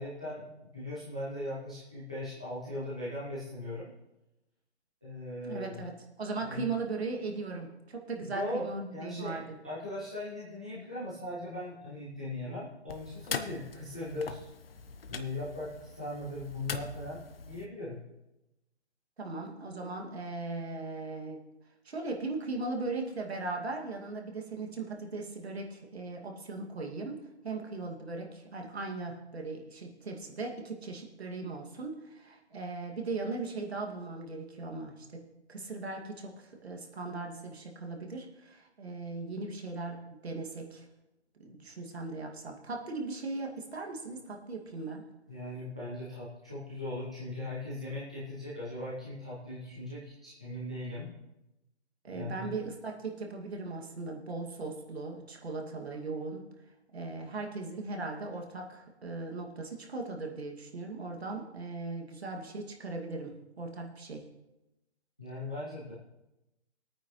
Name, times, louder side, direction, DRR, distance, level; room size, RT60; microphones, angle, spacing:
voice 1, 0.0-3.9 5.0-5.8 6.4-6.7 8.3-8.6 8.9-14.5 15.0-18.0 45.3-51.1 52.1-52.5 65.2-65.9, left 1 dB, 5° left, -10 dB, 0.5 m, -39 dB
voice 2, 5.4-9.6 19.2-21.4 21.8-35.2 35.5-40.8 41.4-45.0 52.0-56.4 56.9-64.2, right 3 dB, 70° right, 1 dB, 2.3 m, -38 dB
sound 1, 12.9-17.7, left 5 dB, 60° left, 1.0 m, -41 dB
19.0 x 9.1 x 3.2 m, 0.96 s
hypercardioid pair, 170°, 33 cm